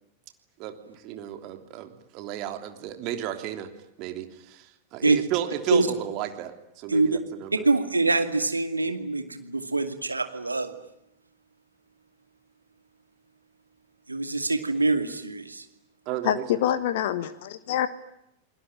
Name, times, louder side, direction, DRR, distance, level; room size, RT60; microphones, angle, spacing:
voice 1, 0.6-3.7 4.0-7.6 16.0-16.6, right 11 dB, 40° right, 7 dB, 3.2 m, -33 dB
voice 2, 7.6-10.7 14.1-15.6, right 3 dB, 80° right, 7 dB, 2.4 m, -24 dB
voice 3, 16.2-17.9, left 11 dB, 55° left, 13 dB, 1.3 m, -26 dB
29.5 x 21.0 x 9.0 m, 0.82 s
figure-of-eight pair, 90°, 0 cm